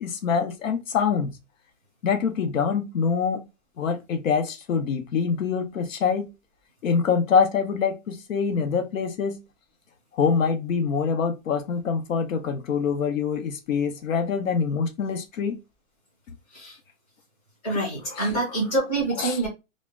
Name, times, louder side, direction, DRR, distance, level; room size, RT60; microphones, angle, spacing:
voice 1, 0.0-1.3 2.0-3.4 3.8-6.3 6.8-9.4 10.1-15.6 18.2-18.3 19.2-19.4, left 6 dB, 75° left, 0.7 m, -25 dB
voice 2, 17.6-19.5, right 2 dB, 10° left, 0.5 m, -26 dB
2.1 x 2.0 x 3.3 m
hypercardioid pair, 170°, 40 cm